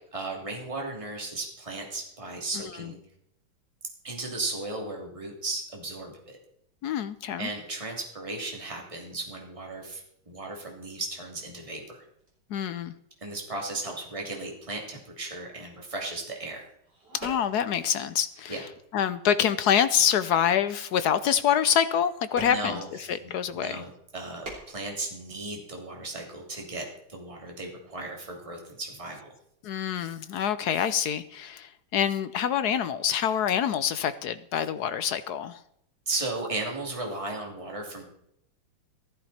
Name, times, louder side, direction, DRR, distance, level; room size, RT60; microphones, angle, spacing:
voice 1, 0.1-3.0 4.0-6.4 7.4-12.0 13.2-16.6 18.5-18.6 22.4-22.9 23.2-29.2 36.1-38.0, right 2 dB, 15° right, 0 dB, 2.8 m, -36 dB
voice 2, 6.8-7.5 12.5-12.9 17.1-18.6 18.9-22.8 23.1-23.8 29.6-35.6, left 9 dB, 70° left, 12 dB, 1.0 m, -26 dB
sound 1, 9.8-11.3 11.6-16.2 16.6-23.4 24.0-25.8 26.1-26.2, right 1 dB, 50° right, 4.5 m, -48 dB
15.0 x 13.5 x 4.2 m, 0.73 s
omnidirectional pair, 2.3 m